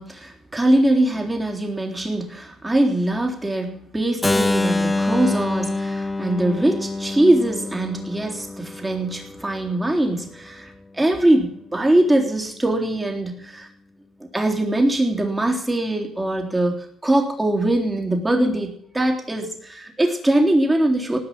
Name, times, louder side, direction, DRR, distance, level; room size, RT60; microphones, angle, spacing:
voice 1, 0.0-13.7 14.3-21.2, right 1 dB, 15° right, 2 dB, 3.6 m, -22 dB
Keyboard (musical), 4.2-10.1, left 2 dB, 15° left, 1.2 m, -26 dB
18.5 x 6.2 x 8.7 m, 0.68 s
cardioid pair, 90°, 0 cm